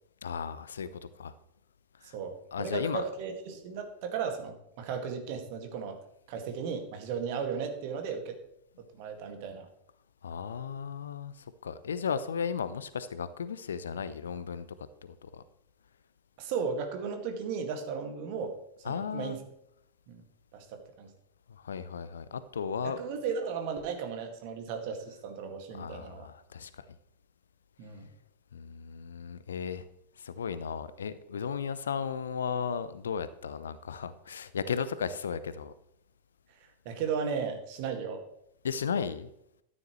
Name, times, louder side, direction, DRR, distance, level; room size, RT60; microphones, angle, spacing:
voice 1, 0.2-0.9 1.2-1.3 2.0-2.1 2.5-3.0 10.2-11.3 11.6-14.7 15.0-15.4 18.8-19.4 21.6-23.0 25.7-26.8 28.5-29.8 30.2-35.7 38.6-39.3, left 6 dB, 65° left, 15 dB, 0.6 m, -35 dB
voice 2, 2.1-6.0 6.3-8.3 8.9-9.7 16.4-18.5 18.8-19.4 20.1-20.2 20.5-21.1 22.8-26.3 27.8-28.1 36.9-38.3, right 6 dB, 45° right, 5 dB, 2.0 m, -35 dB
13.0 x 9.7 x 3.2 m, 0.80 s
figure-of-eight pair, 90°, 0 cm